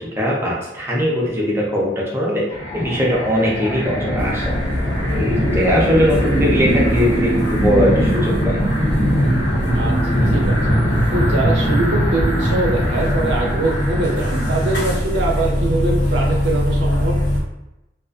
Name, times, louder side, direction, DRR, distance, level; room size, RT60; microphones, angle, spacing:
voice 1, 0.0-2.5 2.7-4.5 5.1-8.6, equal, 15° right, -4 dB, 0.6 m, -20 dB
sound 1, 2.5-14.9, equal, 35° left, 0.7 m, -21 dB
sound 2, 4.2-17.4, equal, 75° left, 0.9 m, -23 dB
voice 2, 10.3-10.6 11.1-17.2, right 2 dB, 85° right, -1 dB, 0.6 m, -23 dB
2.4 x 2.3 x 2.4 m, 0.94 s
head